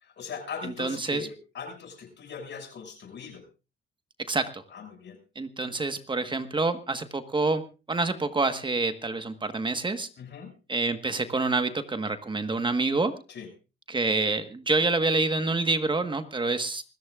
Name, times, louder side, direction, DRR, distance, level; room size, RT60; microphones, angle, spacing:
voice 1, 0.0-3.4 4.7-5.2 10.2-10.5 13.3-13.5, left 6 dB, 65° left, 4 dB, 6.1 m, -40 dB
voice 2, 0.6-1.3 4.3-4.6 5.3-7.6 7.9-10.1 10.7-13.1 13.9-16.8, right 3 dB, 25° right, 9 dB, 1.4 m, -27 dB
26.5 x 14.5 x 2.4 m, 0.32 s
cardioid pair, 90°, 20 cm